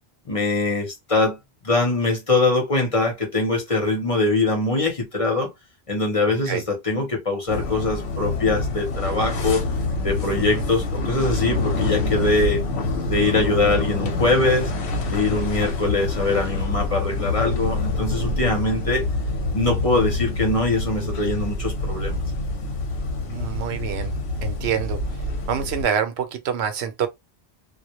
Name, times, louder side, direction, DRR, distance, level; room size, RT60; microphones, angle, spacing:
voice 1, 0.3-1.4 1.6-5.5 5.9-9.6 10.0-12.6 13.1-14.7 15.1-19.0 19.5-22.2, left 2 dB, 35° left, 0.8 m, -22 dB
voice 2, 6.3-6.6 10.5-10.6 23.3-24.1 24.4-25.0 25.5-27.1, right 8 dB, 85° right, 0.8 m, -26 dB
sound 1, 7.5-25.8, left 2 dB, 85° left, 1.0 m, -26 dB
2.2 x 2.1 x 2.8 m
omnidirectional pair, 1.1 m